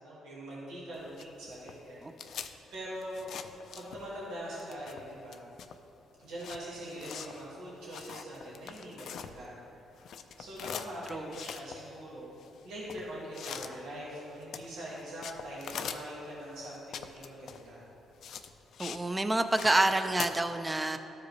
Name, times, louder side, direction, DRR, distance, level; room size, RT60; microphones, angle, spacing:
voice 1, 0.0-3.3 3.7-5.4 6.2-9.6 10.4-12.3 12.6-17.8, equal, 85° right, -6 dB, 1.7 m, -43 dB
sound 1, 0.9-4.3 4.5-9.7 9.9-19.1 19.4-20.3, left 8 dB, 70° left, 0.4 m, -43 dB
voice 2, 18.8-21.0, right 2 dB, 15° right, 8 dB, 0.4 m, -28 dB
12.5 x 4.9 x 3.1 m, 3.0 s
cardioid pair, 90°, 0 cm